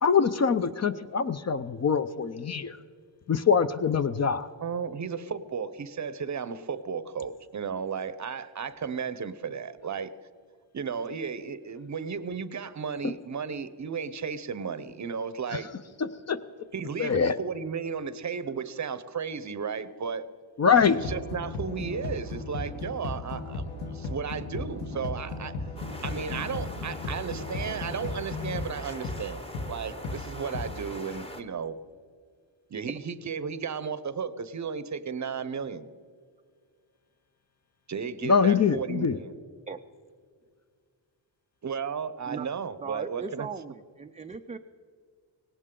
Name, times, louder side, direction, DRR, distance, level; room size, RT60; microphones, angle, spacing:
voice 1, 0.0-2.8 3.3-4.5 13.0-13.1 15.5-15.6 16.0-16.4 17.0-17.3 20.6-21.0 38.2-39.2, left 6 dB, 35° left, 12 dB, 0.5 m, -24 dB
voice 2, 4.6-10.1 10.7-15.7 16.7-20.3 21.0-23.6 23.9-25.6 26.0-29.4 29.7-31.8 32.7-35.9 37.9-39.3 41.6-43.5, right 6 dB, 40° right, 15 dB, 0.7 m, -34 dB
sound 1, 20.7-30.9, left 3 dB, 60° left, 1.6 m, -36 dB
sound 2, 25.8-31.4, left 1 dB, 15° left, 1.0 m, -43 dB
voice 3, 42.8-44.6, right 5 dB, 15° right, 6 dB, 0.3 m, -38 dB
18.0 x 17.5 x 3.7 m, 2.1 s
cardioid pair, 110°, 46 cm